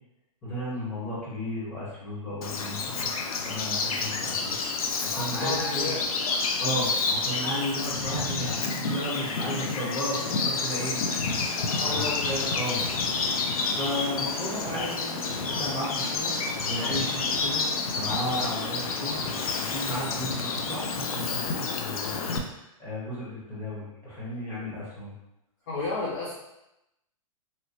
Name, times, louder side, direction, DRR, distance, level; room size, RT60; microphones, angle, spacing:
voice 1, 0.4-3.1 3.4-4.6 5.0-5.9 6.6-11.0 11.5-12.8 13.7-16.3 16.6-17.7 17.9-22.4 22.8-25.1, equal, 15° left, -8 dB, 1.0 m, -34 dB
Bird vocalization bird call bird song, 2.4-22.4, left 4 dB, 85° left, 0.5 m, -29 dB
voice 2, 5.3-6.4 11.8-12.4 25.7-26.3, left 3 dB, 30° left, -5 dB, 0.5 m, -32 dB
3.0 x 2.9 x 2.7 m, 0.88 s
hypercardioid pair, 170°, 18 cm